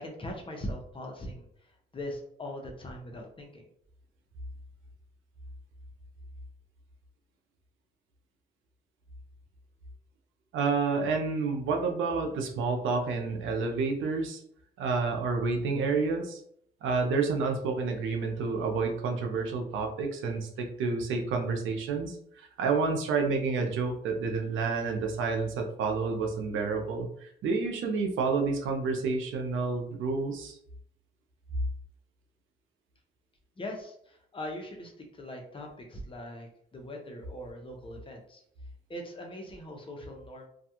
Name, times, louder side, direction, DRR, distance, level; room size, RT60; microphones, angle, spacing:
voice 1, 0.0-3.6 33.6-38.4 38.9-40.5, left 1 dB, 25° left, 2 dB, 0.7 m, -41 dB
voice 2, 10.5-14.4 14.8-16.4 16.8-30.6, right 4 dB, 80° right, 3 dB, 0.6 m, -29 dB
2.3 x 2.2 x 2.8 m, 0.68 s
cardioid pair, 90°, 20 cm